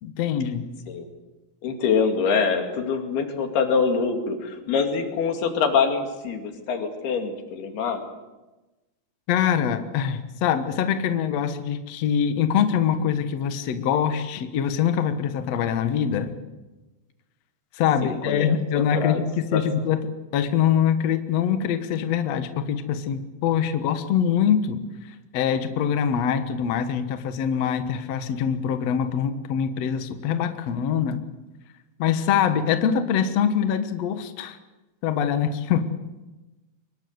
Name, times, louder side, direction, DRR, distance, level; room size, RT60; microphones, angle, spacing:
voice 1, 0.0-0.7 9.3-16.3 17.7-20.0 20.3-24.8 25.3-31.2 32.0-34.6 35.0-35.8, left 8 dB, 55° left, 8 dB, 2.1 m, -24 dB
voice 2, 1.6-8.0 18.0-19.2 19.5-19.6, left 5 dB, 85° left, 5 dB, 4.4 m, -25 dB
24.0 x 21.5 x 8.0 m, 1.1 s
omnidirectional pair, 4.4 m